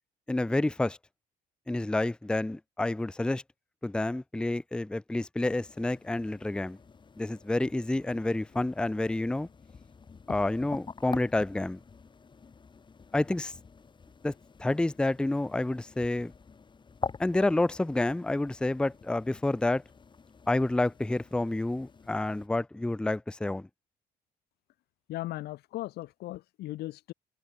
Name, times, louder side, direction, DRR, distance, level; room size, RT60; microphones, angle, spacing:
voice 1, 0.3-1.0 1.7-3.4 3.8-6.8 7.2-9.5 10.3-11.8 13.1-13.5 14.2-14.3 14.6-16.3 17.2-19.8 20.5-23.7, left 2 dB, 5° left, 0.5 m, -29 dB
sound 1, 5.4-22.5, left 5 dB, 30° left, 2.7 m, -46 dB
voice 2, 25.1-27.1, left 16 dB, 70° left, 0.8 m, -37 dB
cardioid pair, 110°, 17 cm